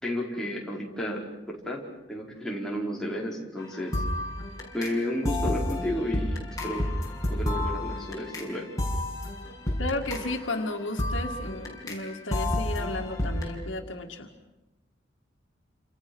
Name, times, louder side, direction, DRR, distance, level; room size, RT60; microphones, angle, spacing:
voice 1, 0.0-4.0 4.7-6.9 7.3-8.7, left 1 dB, 5° left, -3 dB, 4.9 m, -32 dB
sound 1, 3.6-13.5, left 1 dB, 20° left, 6.2 m, -31 dB
voice 2, 9.8-14.3, left 2 dB, 90° left, 3 dB, 2.1 m, -33 dB
29.5 x 27.5 x 6.3 m, 1.0 s
head